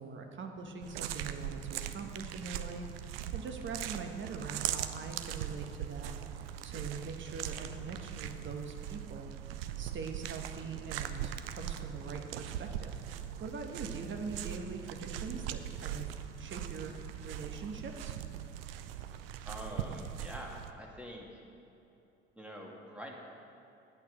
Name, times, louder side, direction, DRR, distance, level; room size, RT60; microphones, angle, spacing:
voice 1, 0.0-6.4 6.6-9.3 9.8-12.9 13.4-16.1 16.4-16.9 17.2-18.1, right 4 dB, 40° right, 4 dB, 1.5 m, -43 dB
sound 1, 0.8-20.7, right 11 dB, 75° right, 0.6 m, -40 dB
voice 2, 19.4-21.4 22.4-23.1, equal, 5° right, -1 dB, 2.4 m, -45 dB
11.0 x 8.8 x 6.5 m, 2.8 s
figure-of-eight pair, 55°, 30 cm